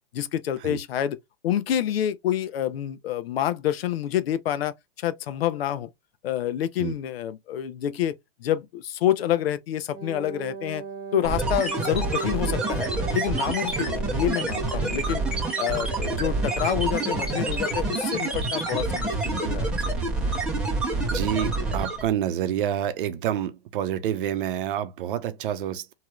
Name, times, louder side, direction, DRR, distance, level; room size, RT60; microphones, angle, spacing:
voice 1, 0.1-1.2 1.4-5.9 6.2-10.8 11.1-15.2 15.6-19.9, left 11 dB, 80° left, 0.7 m, -28 dB
Wind instrument woodwind instrument, 9.9-18.1, right 6 dB, 30° right, 1.0 m, -38 dB
sound 1, 11.2-22.1, right 2 dB, 5° right, 1.2 m, -27 dB
voice 2, 21.1-25.9, right 10 dB, 60° right, 0.7 m, -28 dB
2.9 x 2.9 x 2.3 m
hypercardioid pair, 145°, 30 cm